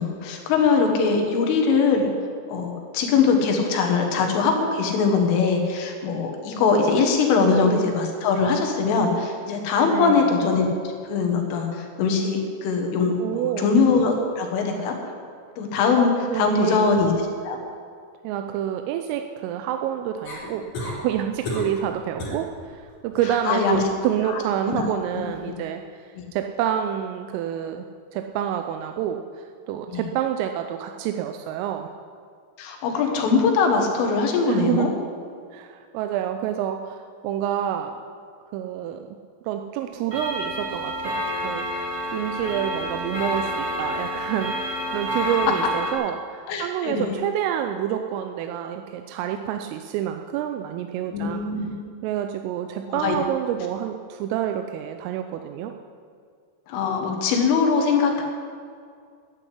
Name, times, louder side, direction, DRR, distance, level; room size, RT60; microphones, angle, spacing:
voice 1, 0.0-2.1 2.5-10.7 11.1-14.9 15.6-17.1 17.4-17.6 23.5-23.8 24.3-24.4 24.7-25.6 29.9-30.0 32.6-34.9 46.5-47.2 51.1-51.8 52.9-53.2 56.7-58.2, left 5 dB, 75° left, 2 dB, 4.0 m, -22 dB
voice 2, 7.4-7.8 9.9-10.4 13.2-13.7 16.3-17.0 18.2-27.9 28.1-31.9 34.5-35.0 35.5-38.0 38.5-39.2 39.4-41.7 42.1-51.4 52.0-55.7, right 10 dB, 85° right, 6 dB, 3.2 m, -28 dB
sound 1, 20.2-21.0 21.4-21.8 22.2-22.4 22.9-23.3 25.1-25.2, left 1 dB, 40° left, 4.3 m, -31 dB
Clock, 40.1-45.9, equal, 30° right, 4.7 m, -29 dB
11.0 x 10.0 x 9.9 m, 2.2 s
omnidirectional pair, 5.9 m